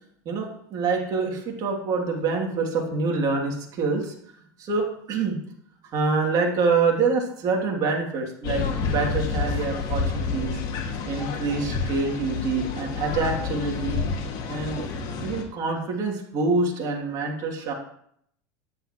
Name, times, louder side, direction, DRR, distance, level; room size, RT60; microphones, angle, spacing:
voice 1, 0.2-4.1 4.6-5.4 5.9-14.0 14.5-17.7, right 4 dB, 45° right, 0 dB, 2.8 m, -26 dB
sound 1, 8.4-15.4, left 4 dB, 45° left, 2.0 m, -29 dB
9.7 x 9.6 x 3.1 m, 0.68 s
supercardioid pair, 115°, 9 cm